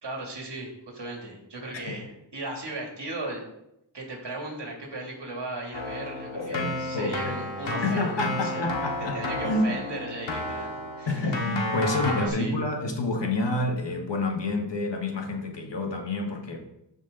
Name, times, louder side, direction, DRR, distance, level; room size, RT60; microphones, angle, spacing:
voice 1, 0.0-3.4 3.9-8.7 9.1-11.1 11.9-12.6, right 2 dB, 65° right, 2.8 m, -37 dB
Keyboard (musical), 5.7-12.3, left 1 dB, 85° left, 2.1 m, -32 dB
voice 2, 6.3-7.4 7.8-9.8 11.1-16.6, left 2 dB, 65° left, 1.9 m, -28 dB
14.5 x 5.1 x 3.9 m
wide cardioid pair, 90°, 45 cm